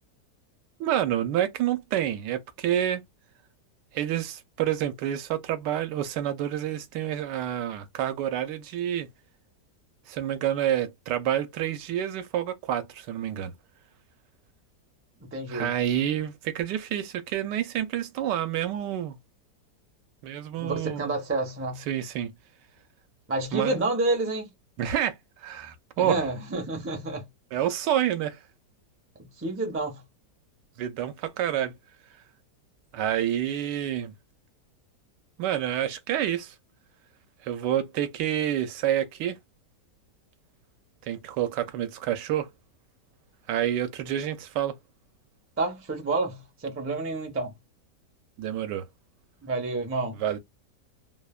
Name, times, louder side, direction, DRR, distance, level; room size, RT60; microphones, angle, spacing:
voice 1, 0.8-3.0 3.9-9.1 10.1-13.5 15.5-19.2 20.2-21.1 21.9-22.3 23.5-23.8 24.8-26.2 27.5-28.4 30.8-31.7 32.9-34.1 35.4-36.5 37.4-39.4 41.1-42.5 43.5-44.8 48.4-48.8 50.2-50.4, right 11 dB, 85° right, 1.2 m, -28 dB
voice 2, 15.2-15.7 20.6-21.8 23.3-24.5 26.0-27.3 27.6-27.7 29.2-30.0 45.6-47.5 49.4-50.2, right 2 dB, 20° right, 0.3 m, -29 dB
3.1 x 2.1 x 2.3 m
omnidirectional pair, 1.8 m